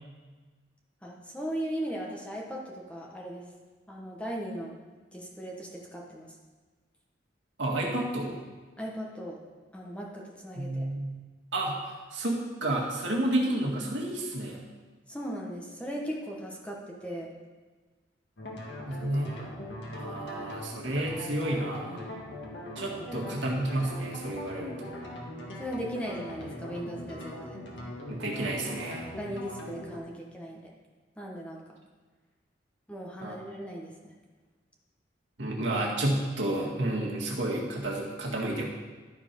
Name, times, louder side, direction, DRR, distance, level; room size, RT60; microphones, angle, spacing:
voice 1, 1.0-3.4 3.9-4.7 5.1-6.3 8.8-9.4 9.7-10.9 15.1-17.3 23.1-23.3 25.6-27.6 29.2-30.7 31.2-31.6 32.9-34.1, equal, 5° left, -2 dB, 1.2 m, -38 dB
voice 2, 7.6-8.4 10.6-11.1 11.5-14.6 18.5-19.4 19.9-22.0 22.8-24.9 28.1-29.1 33.2-33.4 35.4-38.7, right 1 dB, 85° right, -2 dB, 1.8 m, -31 dB
sound 1, 18.4-30.0, left 1 dB, 70° left, 1.7 m, -41 dB
12.5 x 4.4 x 5.2 m, 1.3 s
head